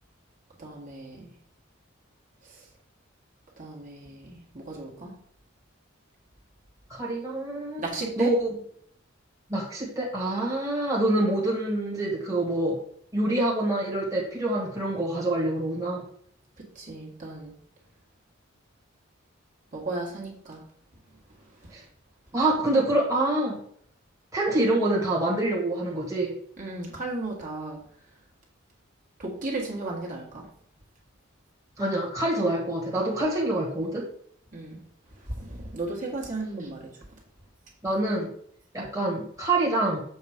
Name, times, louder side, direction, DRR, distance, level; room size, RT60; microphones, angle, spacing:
voice 1, 0.6-1.3 2.4-2.7 3.6-5.2 7.8-8.4 16.8-17.5 19.7-20.7 21.6-21.7 26.6-27.8 29.2-30.5 34.5-34.8 35.2-36.9, right 2 dB, 40° right, -2 dB, 1.6 m, -35 dB
voice 2, 6.9-7.8 8.2-8.5 9.5-12.8 13.1-16.0 21.7-21.8 22.3-23.6 24.3-26.3 31.8-34.1 37.8-38.3 38.7-40.0, right 1 dB, 15° right, -4 dB, 1.6 m, -26 dB
7.2 x 4.0 x 5.1 m, 0.63 s
head